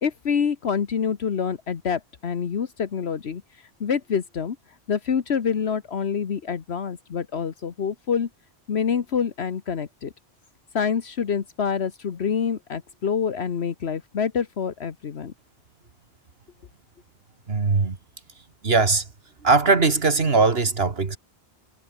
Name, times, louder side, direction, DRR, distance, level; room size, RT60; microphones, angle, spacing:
voice 1, 0.0-3.4 3.8-4.6 4.9-8.3 8.7-10.1 10.7-15.3, left 7 dB, 70° left, 1.4 m, -26 dB
voice 2, 17.5-18.0 18.6-19.1 19.4-21.2, right 4 dB, 65° right, 2.1 m, -20 dB
omnidirectional pair, 1.1 m